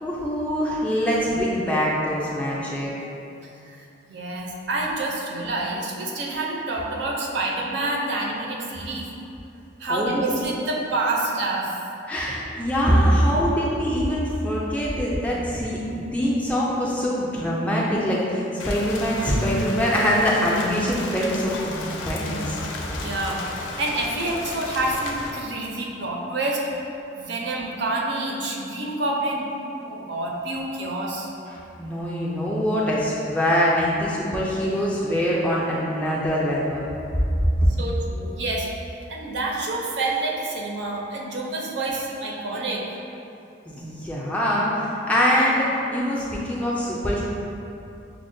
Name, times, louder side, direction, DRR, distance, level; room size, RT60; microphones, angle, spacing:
voice 1, 0.0-2.9 9.9-10.4 12.1-15.8 16.1-22.6 31.8-36.9 43.7-47.2, equal, 5° left, -6 dB, 0.3 m, -23 dB
voice 2, 4.1-9.1 9.8-11.7 23.0-26.6 27.2-29.5 29.8-31.3 37.8-38.7 39.1-42.8, right 2 dB, 65° right, -1 dB, 0.5 m, -28 dB
Rain, 18.6-25.3, left 2 dB, 75° left, 0.4 m, -34 dB
5.7 x 2.1 x 2.5 m, 2.8 s
head